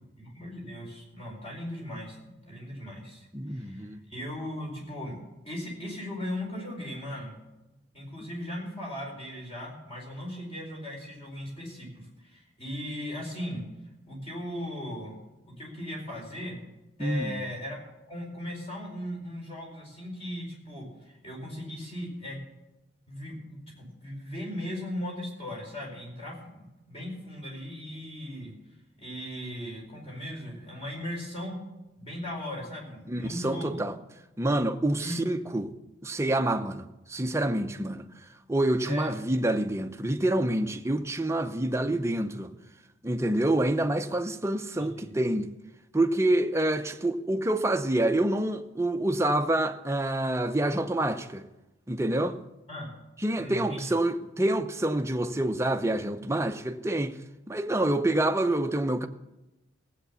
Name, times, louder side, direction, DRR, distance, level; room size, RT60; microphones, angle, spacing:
voice 1, 0.2-5.2 5.4-7.4 7.9-13.6 14.1-15.2 15.4-16.6 17.0-17.8 18.1-22.4 23.1-28.5 29.0-31.6 32.0-33.8 35.0-35.2 38.8-39.1 44.8-45.2 52.7-52.9 53.3-53.9, left 1 dB, 30° left, 4.6 m, -38 dB
voice 2, 3.3-4.0 17.0-17.5 33.1-33.9 34.4-35.7 36.0-38.0 38.5-42.5 43.0-45.5 45.9-51.4 51.9-52.4 53.2-57.2 57.5-59.1, right 1 dB, 15° right, 0.7 m, -27 dB
16.5 x 8.2 x 7.0 m
head